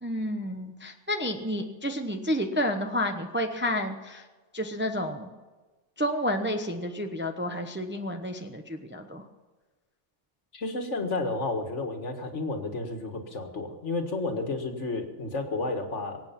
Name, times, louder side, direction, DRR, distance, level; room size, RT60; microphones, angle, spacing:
voice 1, 0.0-4.2 4.5-5.3 6.0-9.2, equal, 10° right, 5 dB, 0.8 m, -30 dB
voice 2, 10.5-16.2, left 3 dB, 75° left, 5 dB, 2.0 m, -31 dB
23.5 x 8.8 x 5.9 m, 1.3 s
omnidirectional pair, 1.2 m